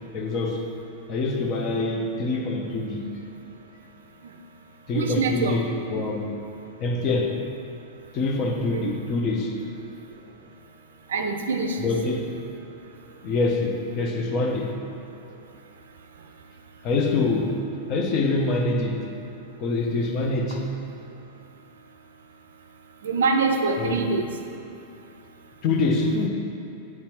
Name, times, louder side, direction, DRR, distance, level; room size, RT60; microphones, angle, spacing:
voice 1, 0.1-0.7 1.1-3.1 4.9-6.3 6.8-7.4 8.1-9.6 11.8-12.2 13.2-14.7 16.8-17.6 17.9-19.0 19.6-20.7 23.8-24.0 25.6-26.3, left 3 dB, 35° left, 2 dB, 0.7 m, -25 dB
voice 2, 4.9-5.6 8.7-8.9 11.1-11.9 23.0-24.3, right 4 dB, 65° right, 4 dB, 0.4 m, -24 dB
8.1 x 4.6 x 3.0 m, 2.7 s
figure-of-eight pair, 90°, 0 cm